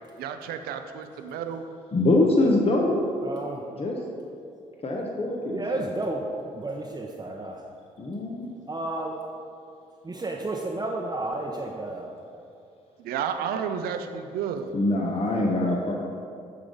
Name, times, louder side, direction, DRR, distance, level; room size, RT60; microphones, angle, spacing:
voice 1, 0.2-1.6 13.0-14.7, right 7 dB, 75° right, 8 dB, 0.6 m, -31 dB
voice 2, 1.9-3.0 3.8-4.0 4.8-5.8 8.0-8.5 14.7-15.9, left 2 dB, 40° left, 0 dB, 1.1 m, -24 dB
voice 3, 3.2-3.6 5.5-6.3 6.5-7.6 8.7-9.2 10.0-12.1, right 2 dB, 25° right, -1 dB, 0.9 m, -32 dB
10.0 x 3.8 x 5.3 m, 2.5 s
supercardioid pair, 55°, 16 cm